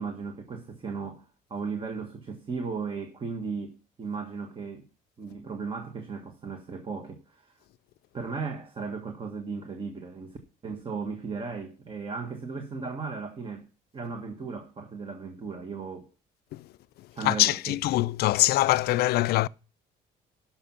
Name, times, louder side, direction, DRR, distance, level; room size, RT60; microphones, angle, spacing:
voice 1, 0.0-4.9 5.2-7.6 8.1-13.6 13.9-16.1 17.1-17.8, right 5 dB, 30° right, 1.4 m, -36 dB
voice 2, 17.2-19.5, left 17 dB, 70° left, 0.4 m, -23 dB
11.5 x 5.9 x 5.8 m
cardioid pair, 110°, 17 cm